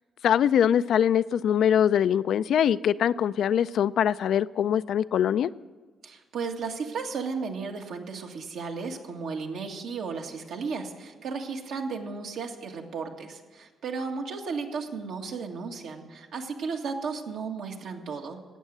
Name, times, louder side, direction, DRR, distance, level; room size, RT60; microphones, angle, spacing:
voice 1, 0.2-5.5, left 9 dB, 70° left, 0.4 m, -23 dB
voice 2, 6.0-18.4, right 5 dB, 75° right, 1.9 m, -34 dB
13.5 x 8.9 x 9.4 m
cardioid pair, 90°, 0 cm